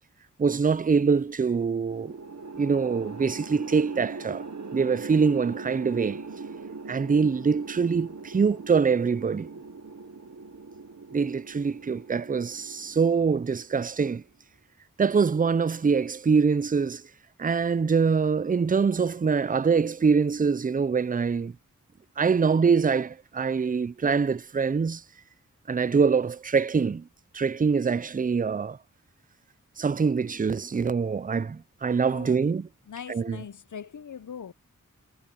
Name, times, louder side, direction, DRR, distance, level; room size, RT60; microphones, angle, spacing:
voice 1, 0.4-2.2 2.6-4.4 4.7-6.2 6.9-9.5 11.1-14.2 15.0-17.0 17.4-21.5 22.2-25.0 25.7-27.1 27.3-28.8 29.8-32.7 33.1-33.4, right 5 dB, 25° right, 0.4 m, -24 dB
sound 1, 1.9-14.2, right 4 dB, 55° right, 1.3 m, -41 dB
voice 2, 32.1-32.4 32.9-34.5, left 7 dB, 65° left, 0.7 m, -41 dB
wide cardioid pair, 45°, 33 cm